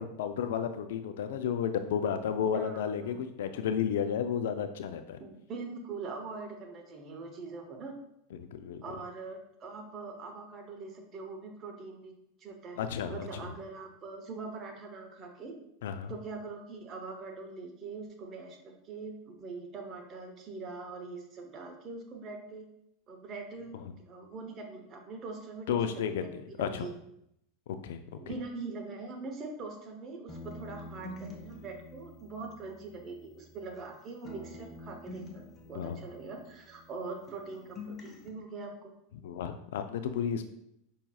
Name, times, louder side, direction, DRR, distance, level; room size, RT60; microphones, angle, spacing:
voice 1, 0.0-5.2 8.5-8.8 12.8-13.3 15.8-16.1 25.7-26.2 26.6-26.9 27.8-28.0 28.3-28.4 35.7-36.0 39.2-40.4, left 8 dB, 75° left, 9 dB, 0.3 m, -32 dB
voice 2, 2.5-3.2 5.2-8.0 8.8-12.1 12.4-12.8 13.1-15.6 16.1-22.7 23.1-23.8 24.1-26.9 28.2-38.9, right 4 dB, 40° right, 3 dB, 0.8 m, -43 dB
sound 1, 30.3-33.9 34.2-37.0 37.3-38.3, left 2 dB, 25° left, 0.7 m, -47 dB
5.7 x 2.7 x 2.3 m, 0.77 s
hypercardioid pair, 100°, 0 cm